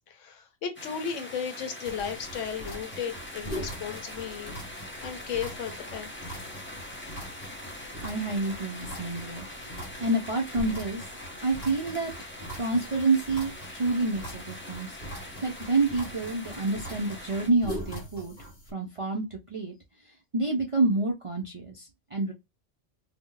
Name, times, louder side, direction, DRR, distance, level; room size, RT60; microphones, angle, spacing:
voice 1, 0.1-4.6 5.0-6.1, left 7 dB, 85° left, 1.1 m, -35 dB
sound 1, 0.8-17.5, left 1 dB, 15° left, 0.4 m, -43 dB
sound 2, 1.8-18.7, equal, 40° left, 1.4 m, -42 dB
voice 2, 8.0-11.1 11.4-12.1 12.5-18.3 18.7-19.7 20.3-22.3, right 2 dB, 50° right, 0.4 m, -28 dB
2.7 x 2.0 x 3.7 m
omnidirectional pair, 1.2 m